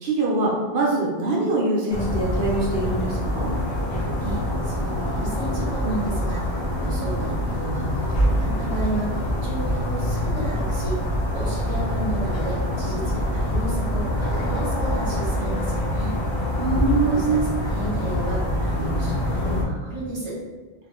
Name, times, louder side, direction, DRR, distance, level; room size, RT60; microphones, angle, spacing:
voice 1, 0.0-3.5 16.6-17.4, right 2 dB, 75° right, -4 dB, 0.8 m, -23 dB
sound 1, 1.9-19.6, left 1 dB, 50° left, 0.3 m, -25 dB
voice 2, 4.2-11.0 11.3-16.2 17.0-20.4, right 2 dB, 30° right, -6 dB, 0.7 m, -33 dB
2.2 x 2.0 x 2.9 m, 1.3 s
omnidirectional pair, 1.0 m